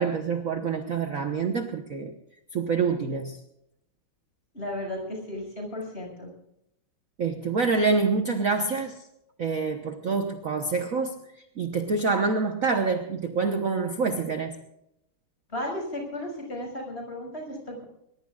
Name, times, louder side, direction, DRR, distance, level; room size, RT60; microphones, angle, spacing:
voice 1, 0.0-2.1 2.5-3.4 7.2-9.0 9.4-11.2 11.6-14.6, right 4 dB, 45° right, 5 dB, 1.3 m, -26 dB
voice 2, 4.5-6.3 15.5-17.8, left 1 dB, 30° left, 1 dB, 6.5 m, -34 dB
22.5 x 21.0 x 2.4 m, 0.82 s
omnidirectional pair, 2.3 m